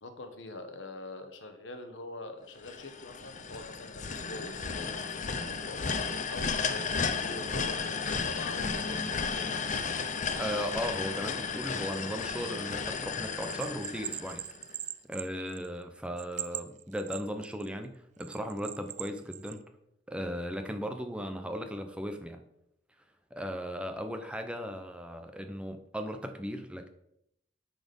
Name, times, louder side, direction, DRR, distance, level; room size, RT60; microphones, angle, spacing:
voice 1, 0.0-9.5, left 2 dB, 70° left, 7 dB, 1.2 m, -44 dB
sound 1, 2.6-14.7, left 5 dB, 40° left, 0.6 m, -34 dB
voice 2, 10.4-14.4 15.1-19.6 20.1-22.4 23.3-26.9, equal, 5° right, 7 dB, 0.7 m, -37 dB
Bell, 13.4-15.8 16.2-17.7 18.2-19.6, right 12 dB, 40° right, 0.4 m, -40 dB
9.7 x 4.2 x 5.3 m, 0.77 s
head